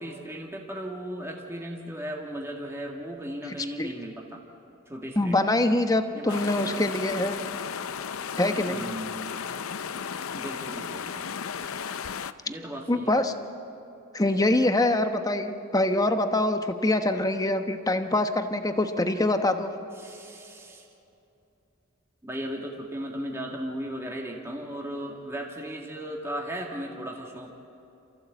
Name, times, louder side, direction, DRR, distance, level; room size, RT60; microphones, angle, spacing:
voice 1, 0.0-4.4 4.9-5.5 6.1-6.7 8.7-9.3 10.3-11.2 12.5-13.2 20.0-20.9 22.2-27.6, equal, 15° right, 0 dB, 1.8 m, -36 dB
voice 2, 3.5-3.9 5.2-7.4 8.4-8.8 12.9-13.3 14.1-19.7, left 1 dB, 15° left, 7 dB, 1.0 m, -24 dB
sound 1, 6.3-12.3, left 7 dB, 85° left, 0.6 m, -34 dB
28.5 x 15.0 x 8.1 m, 2.8 s
head